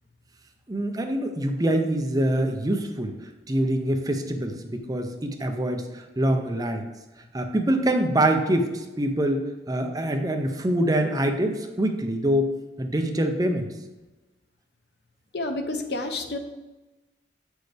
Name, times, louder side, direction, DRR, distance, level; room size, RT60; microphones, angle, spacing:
voice 1, 0.7-3.2 3.5-6.9 7.3-12.5 12.8-13.7, right 1 dB, 20° right, 5 dB, 0.7 m, -25 dB
voice 2, 15.3-16.4, left 2 dB, 65° left, 6 dB, 0.9 m, -29 dB
8.1 x 6.3 x 3.4 m, 1.1 s
head